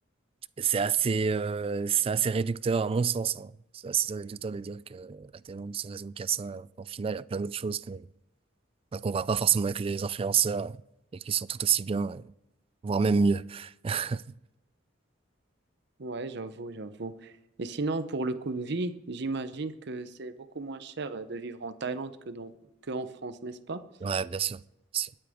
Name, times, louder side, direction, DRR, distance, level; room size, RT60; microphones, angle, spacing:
voice 1, 0.6-8.1 8.9-10.8 11.1-12.2 12.8-14.2 24.0-24.6 24.9-25.1, right 6 dB, 30° right, 0.3 m, -29 dB
voice 2, 16.0-22.5 22.9-23.8, right 3 dB, 60° right, 0.8 m, -35 dB
21.5 x 8.8 x 3.6 m
head